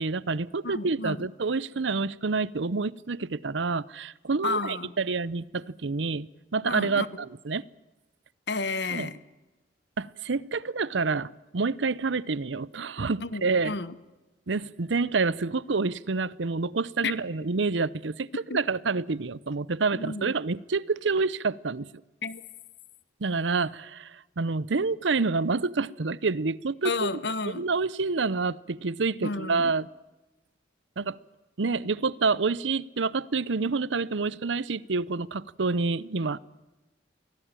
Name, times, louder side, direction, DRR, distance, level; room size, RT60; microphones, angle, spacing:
voice 1, 0.0-7.6 8.9-9.1 10.0-13.7 14.5-21.9 23.2-27.1 27.4-29.9 31.0-31.2 31.6-36.4, right 4 dB, 85° right, 0.8 m, -28 dB
voice 2, 0.6-1.3 4.4-4.9 6.7-7.1 8.5-9.2 13.2-13.9 17.0-17.1 18.5-18.6 19.9-20.3 22.2-22.4 26.8-27.7 29.2-29.7, left 3 dB, 65° left, 1.3 m, -31 dB
24.5 x 17.5 x 9.0 m
head